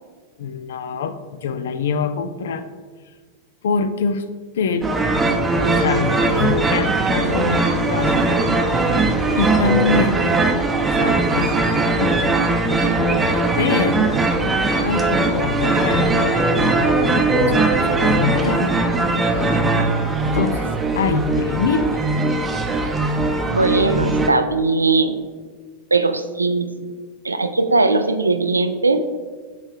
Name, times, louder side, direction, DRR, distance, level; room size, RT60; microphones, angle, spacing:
voice 1, 0.4-2.7 3.6-4.2 4.5-4.9 5.8-8.3 8.7-8.9 9.4-10.2 11.0-12.2 13.6-14.1 14.8-16.3 16.7-18.8 19.3-19.5 20.3-21.9, left 5 dB, 60° left, 11 dB, 0.5 m, -24 dB
sound 1, 4.8-24.3, right 2 dB, 15° right, 0.7 m, -19 dB
voice 2, 23.5-25.2 25.9-26.9 27.2-29.0, right 3 dB, 80° right, 9 dB, 0.4 m, -19 dB
8.3 x 3.3 x 4.9 m, 1.5 s
figure-of-eight pair, 90°, 0 cm